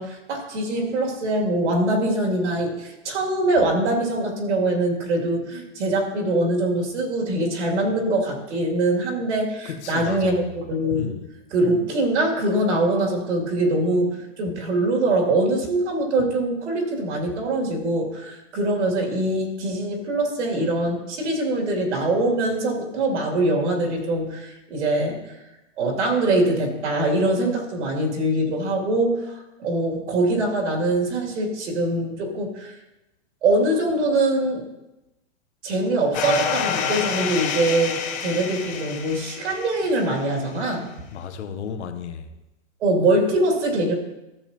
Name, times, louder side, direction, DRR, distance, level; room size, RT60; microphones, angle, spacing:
voice 1, 0.0-11.1 11.5-25.4 25.8-32.8 33.4-34.6 35.6-40.9 42.8-43.9, right 2 dB, 65° right, 2.8 m, -23 dB
voice 2, 9.6-10.5 10.9-11.3 41.1-42.3, left 7 dB, 65° left, 1.0 m, -34 dB
sound 1, 36.1-40.2, left 7 dB, 20° left, 0.8 m, -28 dB
14.0 x 7.1 x 2.9 m
hypercardioid pair, 150°, 37 cm